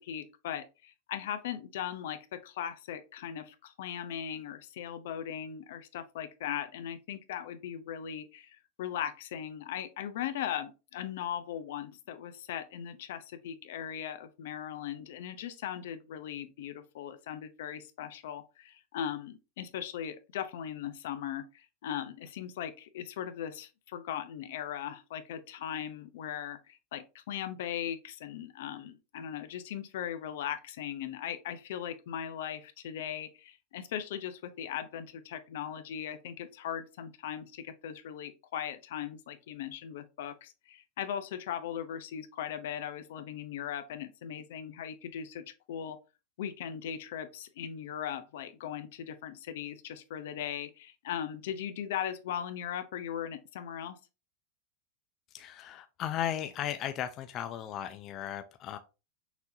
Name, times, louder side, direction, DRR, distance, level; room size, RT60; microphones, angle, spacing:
voice 1, 0.0-46.0 46.4-54.0, left 9 dB, 75° left, 0.6 m, -39 dB
voice 2, 55.3-58.8, left 10 dB, 35° left, 0.4 m, -36 dB
6.0 x 2.8 x 2.7 m
supercardioid pair, 140°, 0 cm